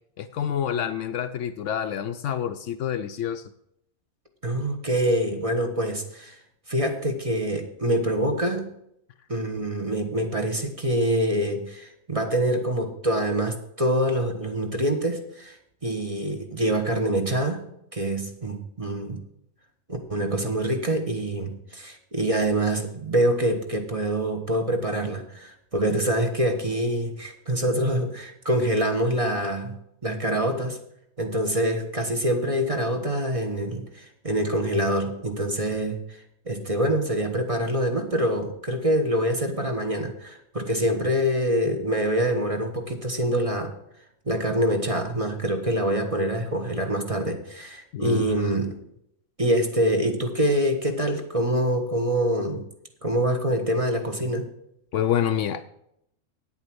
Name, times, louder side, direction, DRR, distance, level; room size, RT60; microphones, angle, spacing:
voice 1, 0.2-3.4 47.9-48.6 54.9-55.7, left 9 dB, 70° left, 10 dB, 0.9 m, -27 dB
voice 2, 4.4-6.4 6.7-8.6 9.3-15.6 15.8-17.6 17.9-19.2 20.1-29.8 30.0-30.8 31.2-36.2 36.5-43.7 44.3-48.8 49.4-52.6 53.0-54.5, right 1 dB, 25° right, 4 dB, 1.1 m, -25 dB
8.9 x 8.0 x 6.0 m, 0.75 s
omnidirectional pair, 1.4 m